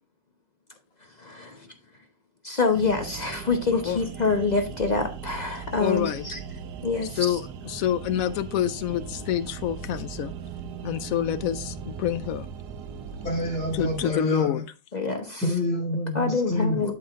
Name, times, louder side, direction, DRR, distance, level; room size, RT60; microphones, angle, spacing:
voice 1, 1.2-1.7 2.4-6.4 6.8-7.4 14.9-15.4 16.1-16.9, left 4 dB, 40° left, 0.6 m, -26 dB
sound 1, 2.7-14.1, right 6 dB, 70° right, 1.2 m, -38 dB
voice 2, 5.8-6.3 7.2-10.3 10.8-12.5 13.7-14.7, left 11 dB, 75° left, 0.8 m, -27 dB
voice 3, 13.2-14.5 15.4-16.9, left 1 dB, 5° left, 1.8 m, -27 dB
11.5 x 4.7 x 2.4 m
omnidirectional pair, 2.0 m